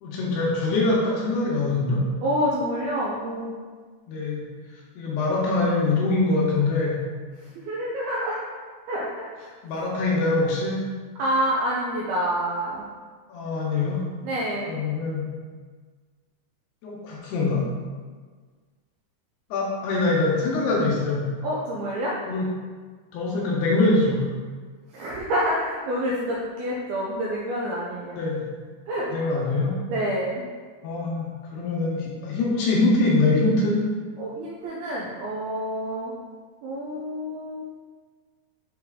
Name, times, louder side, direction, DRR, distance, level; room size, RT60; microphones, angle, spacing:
voice 1, 0.0-2.0 4.1-4.4 5.0-7.0 9.6-10.8 13.3-14.0 14.7-15.2 16.8-17.6 19.5-21.3 22.3-22.5 23.1-24.2 28.1-28.4 29.1-29.7 30.8-33.8, left 2 dB, 75° left, -4 dB, 2.8 m, -23 dB
voice 2, 2.2-3.5 7.6-8.4 8.9-9.4 11.2-12.8 14.2-14.7 21.4-22.1 24.9-28.2 28.9-29.2 29.9-30.4 34.2-36.1 36.6-37.6, equal, 85° right, -4 dB, 2.2 m, -27 dB
8.0 x 3.6 x 3.6 m, 1.5 s
omnidirectional pair, 5.2 m